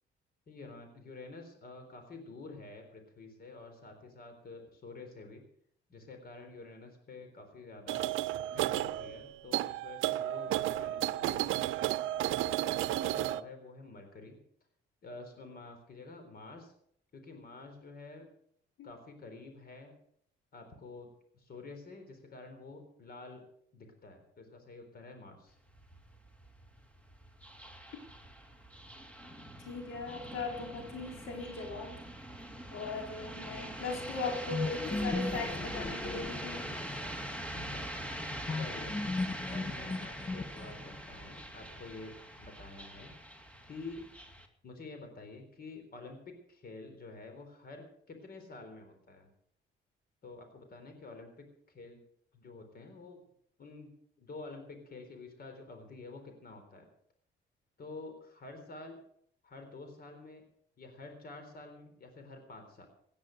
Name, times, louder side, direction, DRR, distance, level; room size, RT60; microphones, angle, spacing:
voice 1, 0.5-5.4 5.9-8.1 8.5-11.6 12.4-14.4 15.0-16.7 17.1-18.3 18.8-19.9 20.5-23.4 23.7-25.6 37.5-38.9 39.5-43.1 43.6-44.1 44.6-49.3 50.2-52.0 52.3-53.2 53.6-53.9 54.2-56.9 57.8-59.0 59.4-60.4 60.8-62.9, left 3 dB, 50° left, 6 dB, 4.0 m, -49 dB
sound 1, 7.9-13.4, right 14 dB, 85° right, 0.6 m, -32 dB
sound 2, 25.5-44.5, equal, 5° left, 2.3 m, -43 dB
voice 2, 29.6-31.9 32.7-36.8 38.3-38.5, left 3 dB, 80° left, 1 dB, 4.2 m, -39 dB
sound 3, 34.5-37.1 38.5-40.9, left 3 dB, 25° left, 0.8 m, -36 dB
17.0 x 10.5 x 6.6 m, 0.68 s
cardioid pair, 90°, 20 cm